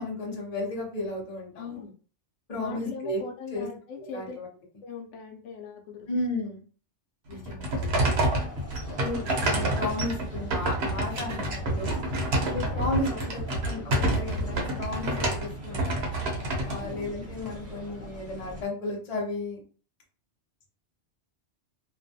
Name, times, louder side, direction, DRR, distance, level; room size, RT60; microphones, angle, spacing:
voice 1, 0.0-1.8 2.5-3.2 3.5-3.7 4.0-4.5 6.1-6.6 8.9-12.0 12.4-16.0 16.6-19.6, left 1 dB, 40° left, 0 dB, 0.7 m, -33 dB
voice 2, 1.6-1.9 2.5-4.4 4.8-6.1 7.3-7.6 16.7-17.0, left 5 dB, 85° left, 3 dB, 0.9 m, -41 dB
sound 1, 7.3-17.5, right 1 dB, 65° right, 0.9 m, -28 dB
sound 2, 7.7-18.6, left 2 dB, 20° right, 0.5 m, -42 dB
2.5 x 2.2 x 2.6 m, 0.39 s
omnidirectional pair, 1.2 m